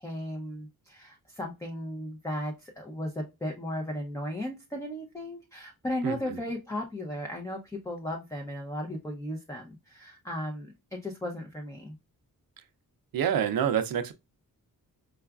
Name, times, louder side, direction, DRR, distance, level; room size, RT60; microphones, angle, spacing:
voice 1, 0.0-12.0, left 1 dB, 10° left, 0.5 m, -36 dB
voice 2, 6.0-6.4 13.1-14.1, right 8 dB, 70° right, 0.5 m, -27 dB
4.7 x 2.3 x 2.2 m
wide cardioid pair, 90°, 36 cm